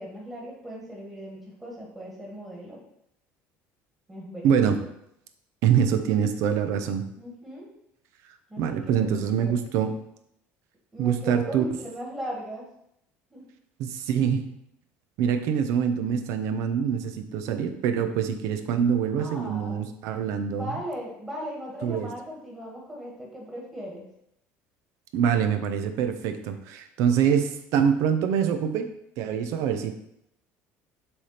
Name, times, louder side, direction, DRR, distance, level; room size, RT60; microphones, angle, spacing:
voice 1, 0.0-2.8 4.1-4.7 7.1-7.7 8.5-9.5 10.9-12.7 13.3-13.5 19.2-19.9 20.5-24.1, equal, 15° right, -3 dB, 1.7 m, -38 dB
voice 2, 4.4-4.8 5.6-7.0 8.6-9.9 11.0-11.6 13.8-14.4 15.2-20.7 21.8-22.1 25.1-28.9 29.2-30.0, right 8 dB, 70° right, 8 dB, 0.7 m, -25 dB
7.1 x 3.4 x 5.7 m, 0.78 s
cardioid pair, 135°, 5 cm